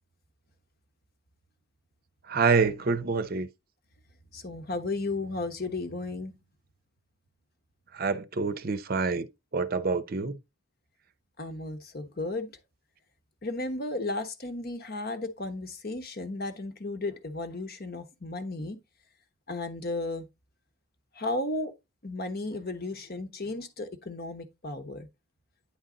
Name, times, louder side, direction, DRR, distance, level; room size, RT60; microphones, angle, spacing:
voice 1, 2.3-3.5 7.9-9.3 9.5-10.4, right 4 dB, 45° right, 0.6 m, -26 dB
voice 2, 4.3-6.3 11.4-12.5 13.4-18.8 19.5-20.2 21.2-21.7 22.0-25.1, left 2 dB, 50° left, 1.2 m, -34 dB
9.7 x 3.9 x 3.8 m
head